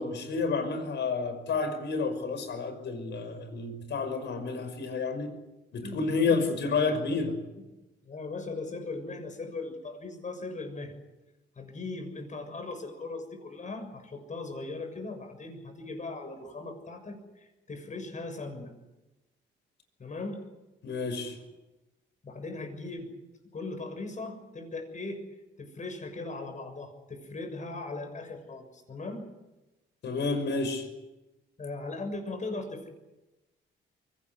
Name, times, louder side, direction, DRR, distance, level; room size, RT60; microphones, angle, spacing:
voice 1, 0.0-5.3 5.7-7.3 20.8-21.4 30.0-30.9, left 4 dB, 65° left, 8 dB, 5.7 m, -30 dB
voice 2, 5.8-6.5 7.1-7.2 8.1-10.9 11.5-18.7 20.0-20.4 22.2-23.1 23.5-25.2 25.6-29.3 31.6-32.9, left 3 dB, 40° left, 6 dB, 6.7 m, -39 dB
24.0 x 18.0 x 9.8 m, 1.0 s
cardioid pair, 90°, 20 cm